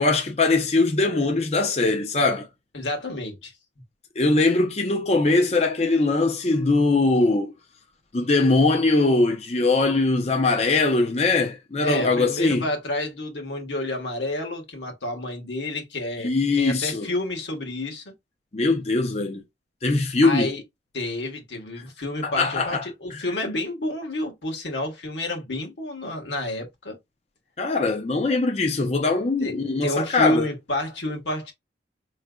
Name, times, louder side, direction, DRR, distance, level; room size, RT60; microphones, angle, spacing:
voice 1, 0.0-2.5 4.2-7.5 8.1-12.6 16.2-17.1 18.5-19.4 19.8-20.5 22.2-22.8 23.1-23.2 27.6-30.5, left 3 dB, 35° left, 0.6 m, -21 dB
voice 2, 2.7-3.5 11.8-18.1 20.2-20.6 20.9-27.0 29.4-29.5 29.8-31.5, left 1 dB, 85° left, 1.5 m, -29 dB
4.9 x 3.2 x 2.3 m
head